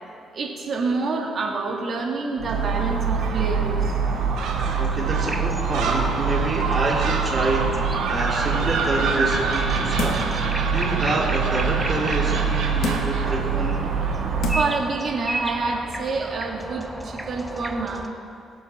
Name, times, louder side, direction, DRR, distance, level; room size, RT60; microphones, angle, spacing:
voice 1, 0.3-4.0 13.2-13.4 14.5-18.0, right 3 dB, 50° right, 0 dB, 1.9 m, -27 dB
Gull seagull, 2.4-14.8, right 5 dB, 85° right, 1.8 m, -24 dB
voice 2, 4.7-13.9, right 2 dB, 35° right, -3 dB, 2.9 m, -27 dB
sound 1, 5.1-18.1, right 1 dB, 5° right, 0.9 m, -34 dB
sound 2, 10.0-10.4 10.9-11.0 12.8-13.3 14.0-14.1 14.4-14.8 15.2-15.3, left 4 dB, 70° left, 1.3 m, -30 dB
22.0 x 7.6 x 3.5 m, 2.5 s
cardioid pair, 90°, 0 cm